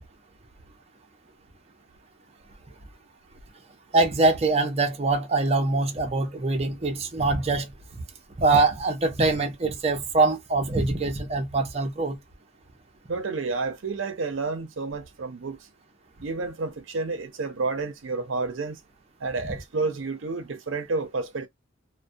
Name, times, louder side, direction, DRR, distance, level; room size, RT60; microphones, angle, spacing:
voice 1, 3.9-7.7 7.9-8.0 8.4-12.2, right 3 dB, 35° right, 0.6 m, -23 dB
voice 2, 13.1-15.6 16.2-18.8 19.2-21.5, right 3 dB, 85° right, 0.6 m, -30 dB
2.3 x 2.1 x 2.5 m
head